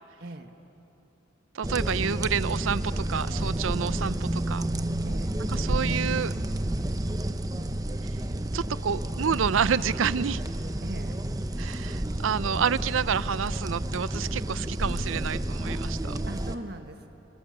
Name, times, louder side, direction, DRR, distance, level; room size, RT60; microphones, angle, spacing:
voice 1, 0.2-0.5 5.0-5.4 10.8-11.3 16.3-17.1, right 1 dB, 55° right, 5 dB, 1.6 m, -40 dB
voice 2, 1.5-4.7 5.5-6.3 8.5-10.4 11.6-16.2, right 7 dB, 90° right, 17 dB, 0.5 m, -29 dB
sound 1, 1.6-16.5, right 1 dB, 20° right, 0.8 m, -30 dB
29.0 x 23.5 x 6.7 m, 2.9 s
head